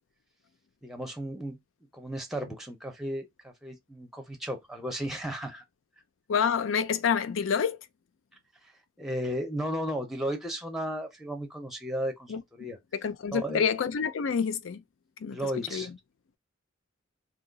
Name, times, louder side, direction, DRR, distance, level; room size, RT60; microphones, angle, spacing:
voice 1, 0.8-1.6 1.9-5.6 9.0-12.8 13.3-13.6 15.3-15.9, equal, ahead, 0.6 m, -34 dB
voice 2, 6.3-7.8 12.3-12.4 12.9-14.8 15.2-16.0, left 6 dB, 85° left, 0.4 m, -28 dB
2.8 x 2.2 x 3.9 m
head